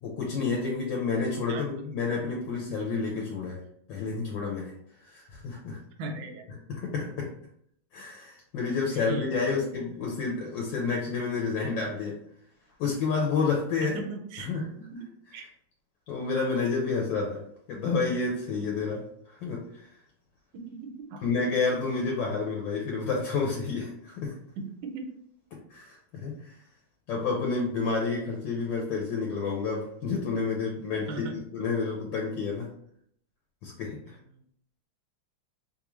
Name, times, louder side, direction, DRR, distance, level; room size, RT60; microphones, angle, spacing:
voice 1, 0.0-3.6 3.9-4.7 5.0-5.8 6.7-7.3 7.9-12.2 12.8-14.0 14.5-14.6 16.1-17.4 17.7-19.9 21.2-24.4 25.7-26.6 27.1-32.7 33.6-34.2, left 4 dB, 75° left, -2 dB, 1.3 m, -30 dB
voice 2, 6.0-6.5 8.9-9.6 13.8-14.5 14.9-15.1 15.3-15.5 20.5-21.2 24.6-25.1 30.9-31.4 34.3-34.4, right 3 dB, 85° right, 3 dB, 1.4 m, -38 dB
3.2 x 2.4 x 3.0 m, 0.68 s
omnidirectional pair, 2.1 m